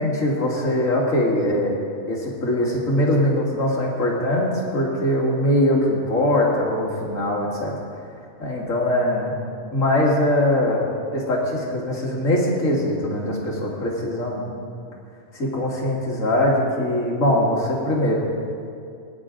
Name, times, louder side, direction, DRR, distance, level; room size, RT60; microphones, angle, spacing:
voice 1, 0.0-1.7 2.1-7.7 8.4-9.3 9.7-10.8 11.1-14.4 15.3-18.2, left 1 dB, 80° left, -2 dB, 2.6 m, -22 dB
21.0 x 10.0 x 3.8 m, 2.5 s
omnidirectional pair, 1.4 m